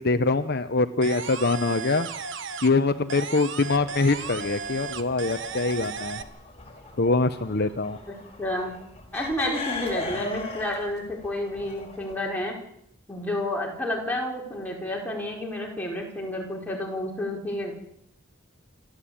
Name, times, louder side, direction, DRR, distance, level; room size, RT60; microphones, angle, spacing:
voice 1, 0.0-2.1 2.6-6.2 7.0-8.0, left 3 dB, 50° left, 9 dB, 0.9 m, -24 dB
sound 1, 1.0-2.8 3.1-6.2, right 5 dB, 60° right, 1.4 m, -35 dB
sound 2, 3.7-12.2, left 3 dB, 30° left, 5.0 m, -39 dB
voice 2, 8.1-8.7 9.1-12.5 13.1-17.7, left 1 dB, 10° left, -1 dB, 5.1 m, -30 dB
28.0 x 13.0 x 8.8 m, 0.78 s
head